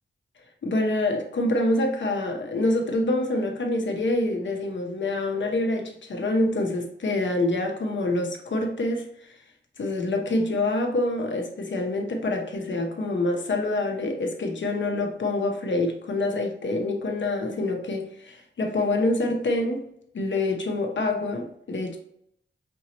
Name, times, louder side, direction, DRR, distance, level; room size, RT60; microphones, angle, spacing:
voice 1, 0.6-9.4 9.8-19.8 20.1-22.0, left 2 dB, 75° left, 0.9 m, -26 dB
5.3 x 2.9 x 2.9 m
wide cardioid pair, 70°, 19 cm